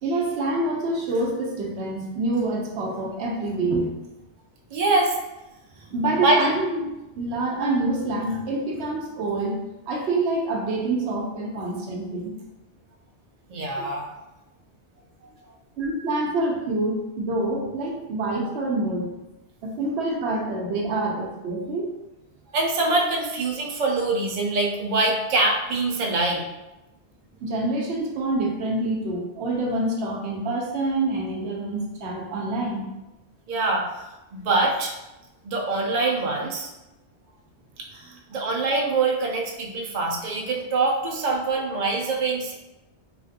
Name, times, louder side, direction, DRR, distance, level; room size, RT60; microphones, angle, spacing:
voice 1, 0.0-4.0 5.9-6.9 7.2-9.6 9.9-12.3 13.8-13.9 15.8-19.1 19.6-22.0 27.4-32.9, right 2 dB, 75° right, 0 dB, 0.9 m, -26 dB
voice 2, 4.7-5.2 6.2-6.4 13.5-14.1 22.5-26.5 33.5-34.0 34.3-35.0 35.4-36.7 37.8-42.5, right 2 dB, 55° right, -1 dB, 0.5 m, -24 dB
3.2 x 2.4 x 2.6 m, 0.99 s
omnidirectional pair, 1.2 m